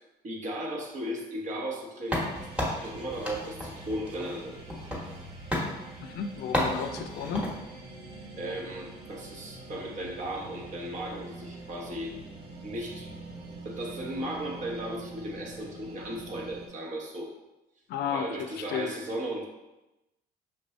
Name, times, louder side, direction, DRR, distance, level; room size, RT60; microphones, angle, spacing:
voice 1, 0.2-2.2 2.6-4.6 8.4-12.2 12.6-13.1 13.6-17.3 18.1-19.4, right 1 dB, 45° right, -1 dB, 1.0 m, -36 dB
sound 1, 2.1-5.2 5.5-5.7 6.5-7.6, left 1 dB, 5° right, 1.2 m, -32 dB
sound 2, 2.3-16.7, right 2 dB, 75° right, 0.8 m, -45 dB
voice 2, 6.0-7.5 17.9-18.9, left 7 dB, 75° left, 6 dB, 0.5 m, -33 dB
5.7 x 2.6 x 3.1 m, 0.99 s
cardioid pair, 110°, 17 cm